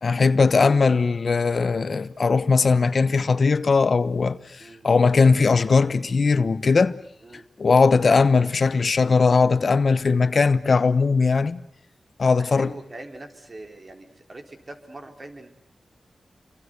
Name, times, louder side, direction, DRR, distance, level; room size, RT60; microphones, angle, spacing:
voice 1, 0.0-7.0 7.6-11.6 12.2-12.7, left 4 dB, 65° left, 1.0 m, -19 dB
voice 2, 12.3-15.5, right 2 dB, 45° right, 4.4 m, -42 dB
28.5 x 24.0 x 8.1 m
cardioid pair, 55°, 0 cm